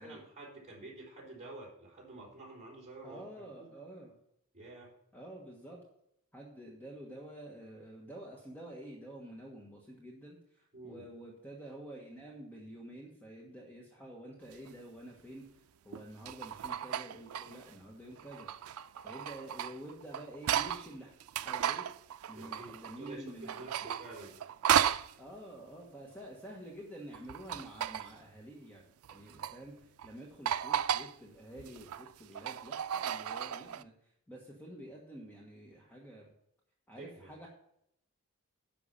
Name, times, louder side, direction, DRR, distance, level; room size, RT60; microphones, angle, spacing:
voice 1, 0.0-3.4 4.5-4.9 10.7-11.0 22.3-24.3 37.0-37.3, right 2 dB, 30° right, -4 dB, 4.1 m, -49 dB
voice 2, 3.0-4.1 5.1-5.8 6.3-15.5 15.8-18.5 19.0-21.1 21.4-21.9 22.3-23.9 25.2-28.8 29.1-33.9 34.3-36.3 36.9-37.5, right 1 dB, 10° left, -2 dB, 1.4 m, -49 dB
sound 1, 14.5-14.7 15.9-17.7 18.2-20.9 21.2-23.1 23.4-25.1 27.1-28.2 29.0-29.6 30.0-30.1 30.5-31.1 31.6-33.8, right 9 dB, 80° right, 0.4 m, -34 dB
10.5 x 5.9 x 5.6 m, 0.74 s
head